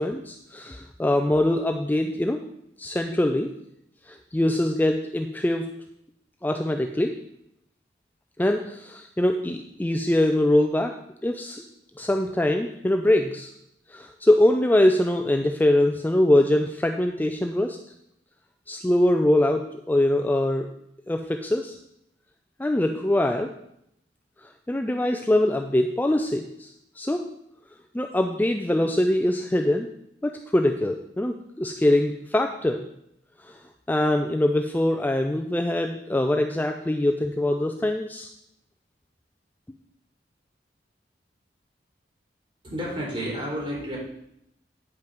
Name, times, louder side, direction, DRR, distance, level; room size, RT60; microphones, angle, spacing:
voice 1, 0.0-2.4 2.8-3.5 4.1-5.7 6.4-7.1 8.4-11.0 11.2-11.6 12.0-13.5 13.9-17.8 18.7-20.7 21.1-21.8 22.6-23.5 24.7-27.2 27.9-29.9 30.2-32.9 33.4-33.6 33.9-38.3, left 1 dB, 10° left, 4 dB, 0.4 m, -23 dB
voice 2, 42.6-44.0, equal, 30° right, -4 dB, 3.7 m, -31 dB
9.3 x 5.7 x 5.1 m, 0.76 s
head